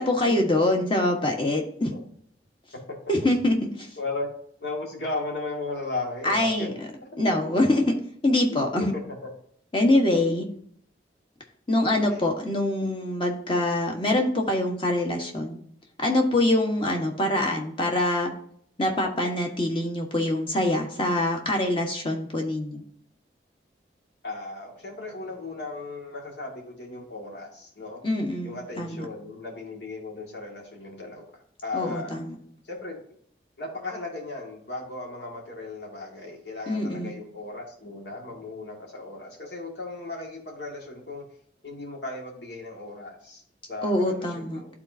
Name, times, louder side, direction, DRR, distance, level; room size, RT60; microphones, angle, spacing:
voice 1, 0.0-1.9 3.1-3.9 6.2-6.7 7.2-7.9 8.2-8.9 9.7-10.5 11.7-15.6 16.0-18.3 18.8-22.8 28.0-29.0 31.7-32.3 36.7-37.2 43.8-44.6, left 1 dB, 30° left, 2 dB, 1.3 m, -24 dB
voice 2, 4.0-4.3 4.6-6.7 8.4-9.0 10.1-10.2 11.9-12.3 24.2-28.0 28.4-31.3 31.6-32.1 32.6-33.0 33.6-41.3 41.6-44.3 44.6-44.7, left 3 dB, 75° left, -1 dB, 2.0 m, -36 dB
12.0 x 4.2 x 2.7 m, 0.64 s
head